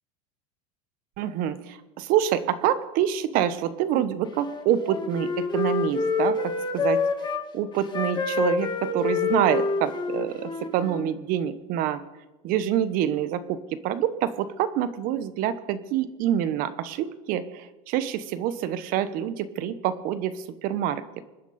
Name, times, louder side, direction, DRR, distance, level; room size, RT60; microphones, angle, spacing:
voice 1, 1.2-12.0 12.4-21.0, right 10 dB, 55° right, 14 dB, 1.2 m, -27 dB
Wind instrument woodwind instrument, 4.3-7.4 7.9-11.1, left 4 dB, 25° left, 1.7 m, -27 dB
25.5 x 10.5 x 4.3 m, 1.1 s
supercardioid pair, 125°, 18 cm